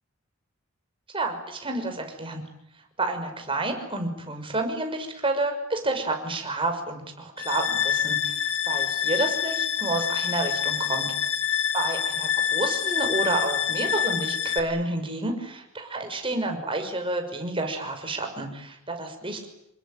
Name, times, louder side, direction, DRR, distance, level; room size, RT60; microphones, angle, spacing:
voice 1, 1.1-2.4 3.0-11.1 11.7-19.5, right 2 dB, 25° right, 5 dB, 5.9 m, -30 dB
sound 1, 7.4-14.6, left 9 dB, 90° left, 3.2 m, -26 dB
28.5 x 22.5 x 9.2 m, 0.77 s
head